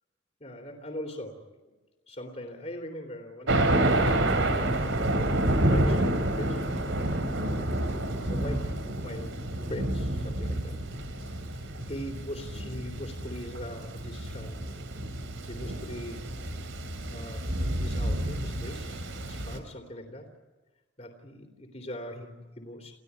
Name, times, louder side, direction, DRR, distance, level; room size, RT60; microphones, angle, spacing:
voice 1, 0.4-1.4 2.1-4.2 5.1-6.6 7.3-7.8 8.3-10.8 11.2-14.6 15.4-16.2 17.1-17.5 17.8-20.3 21.0-22.9, equal, 35° left, 1 dB, 3.1 m, -41 dB
Thunder, 3.5-19.6, right 1 dB, 85° right, 3.2 m, -29 dB
29.0 x 16.0 x 9.5 m, 1.2 s
head